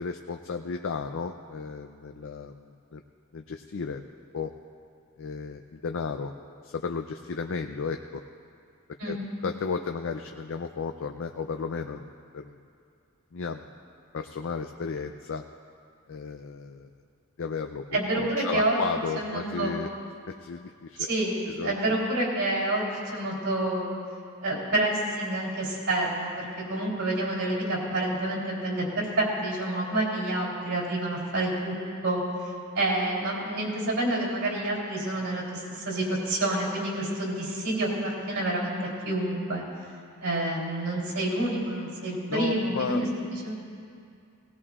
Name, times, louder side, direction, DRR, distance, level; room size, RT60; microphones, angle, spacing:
voice 1, 0.0-3.0 3.3-4.0 4.3-4.5 5.2-6.3 6.6-8.2 9.0-9.2 9.4-12.0 12.3-12.6 13.3-13.7 14.1-15.4 16.1-16.9 17.4-19.9 20.3-21.1 21.5-21.7 42.3-43.1, left 5 dB, 60° left, 6 dB, 0.5 m, -34 dB
voice 2, 17.9-18.8 19.2-19.7 21.0-23.9 24.4-31.8 32.0-32.2 32.8-39.6 40.2-43.5, right 1 dB, 70° right, -4 dB, 3.5 m, -28 dB
18.5 x 18.5 x 2.5 m, 2.4 s
head